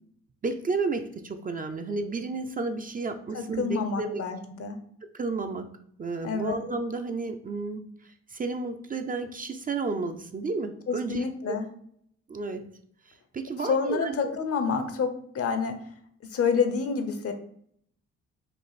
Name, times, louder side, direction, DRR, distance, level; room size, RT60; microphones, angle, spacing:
voice 1, 0.4-4.2 5.1-5.7 6.0-11.6 12.3-12.7 13.1-14.3, right 3 dB, 30° right, 6 dB, 0.5 m, -32 dB
voice 2, 3.3-4.8 6.2-6.6 10.9-11.7 13.7-15.8 16.3-17.3, left 5 dB, 50° left, 8 dB, 0.7 m, -28 dB
5.3 x 2.5 x 4.1 m, 0.66 s
cardioid pair, 90°, 30 cm